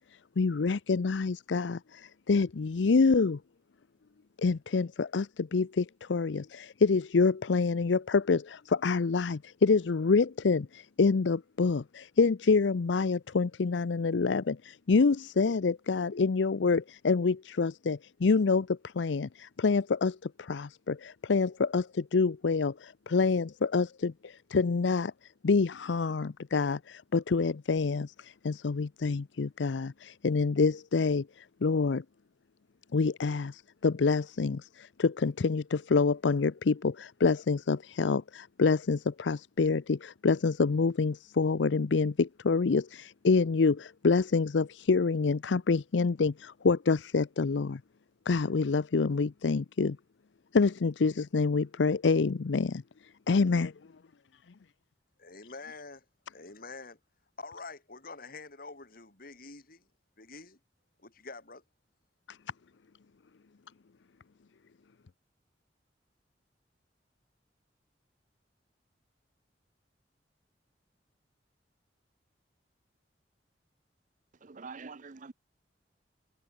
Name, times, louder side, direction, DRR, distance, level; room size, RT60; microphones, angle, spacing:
voice 1, 0.4-3.4 4.4-25.1 25.4-31.3 31.6-32.0 32.9-47.8 48.3-50.0 50.5-52.7 53.3-53.7 62.3-62.4, left 4 dB, 80° left, 0.6 m, -27 dB
voice 2, 55.2-56.0 56.3-57.0 57.4-59.9 60.2-60.6 61.0-61.6, left 3 dB, 55° left, 4.8 m, -46 dB
voice 3, 74.5-75.3, right 4 dB, 45° right, 0.7 m, -45 dB
head